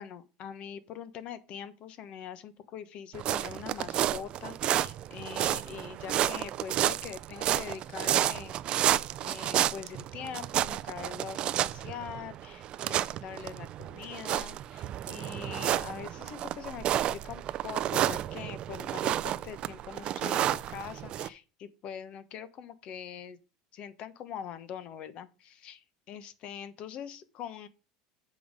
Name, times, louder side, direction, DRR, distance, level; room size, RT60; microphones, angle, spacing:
voice 1, 0.0-8.9 9.2-23.4 23.7-27.7, left 8 dB, 50° left, 1.0 m, -43 dB
sound 1, 3.1-21.3, right 12 dB, 40° right, 0.4 m, -31 dB
7.7 x 5.3 x 5.2 m
supercardioid pair, 125°, 2 cm